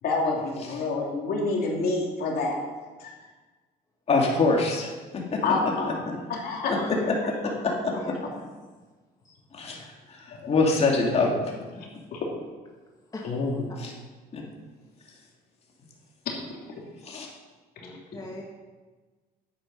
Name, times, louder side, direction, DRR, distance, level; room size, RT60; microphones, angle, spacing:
voice 1, 0.0-2.6 3.0-3.1 5.4-6.0 6.3-6.7 10.3-10.5 12.1-12.3 13.2-13.6 16.2-16.4 16.7-16.8, left 3 dB, 65° left, -1 dB, 3.0 m, -28 dB
voice 2, 4.1-5.4 5.8-6.1 6.7-8.2 9.5-11.3 13.8-13.9 14.3-14.4 15.0-15.3 15.8-15.9 17.0-17.3, left 3 dB, 40° left, -1 dB, 2.6 m, -26 dB
voice 3, 7.9-8.3 9.2-9.4 13.1-13.2 17.8-18.4, left 2 dB, 20° left, -1 dB, 1.6 m, -40 dB
10.5 x 8.9 x 5.5 m, 1.3 s
cardioid pair, 110°, 17 cm